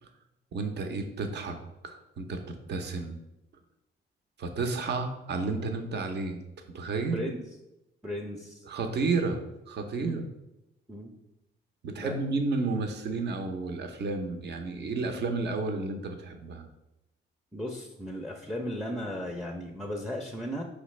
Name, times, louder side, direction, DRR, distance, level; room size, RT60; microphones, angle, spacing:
voice 1, 0.5-1.6 1.8-3.1 4.4-6.4 6.7-7.3 8.7-9.4 9.7-10.2 11.8-16.6, right 3 dB, 60° right, 5 dB, 0.7 m, -31 dB
voice 2, 7.1-7.4 8.0-8.6 10.0-10.2 10.9-11.1 12.0-12.2 17.5-20.6, equal, ahead, 1 dB, 0.5 m, -36 dB
5.1 x 3.2 x 3.1 m, 0.92 s
cardioid pair, 90°, 20 cm